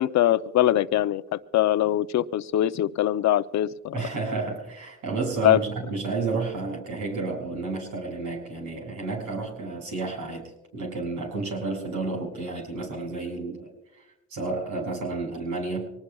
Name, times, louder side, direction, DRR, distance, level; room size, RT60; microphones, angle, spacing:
voice 1, 0.0-4.1 5.4-5.6, left 12 dB, 65° left, 13 dB, 0.7 m, -23 dB
voice 2, 3.9-13.7 14.3-15.9, right 3 dB, 85° right, 0 dB, 6.5 m, -31 dB
24.5 x 19.5 x 2.3 m, 0.98 s
cardioid pair, 90°, 30 cm